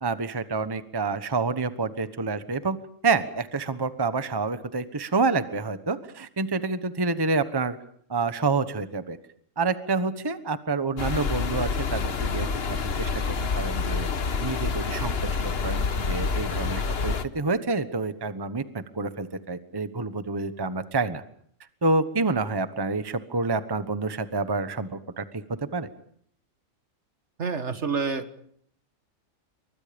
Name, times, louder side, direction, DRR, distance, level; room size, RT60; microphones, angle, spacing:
voice 1, 0.0-2.8 3.0-7.8 8.1-9.2 9.6-12.5 12.8-13.1 13.5-14.1 14.4-15.1 15.6-21.2 21.8-25.2 25.7-25.9, right 3 dB, 20° right, 11 dB, 1.1 m, -28 dB
sound 1, 11.0-17.2, left 5 dB, 50° left, 1.4 m, -27 dB
voice 2, 27.4-28.4, right 5 dB, 55° right, 10 dB, 1.9 m, -28 dB
28.5 x 24.0 x 5.2 m, 0.64 s
omnidirectional pair, 1.4 m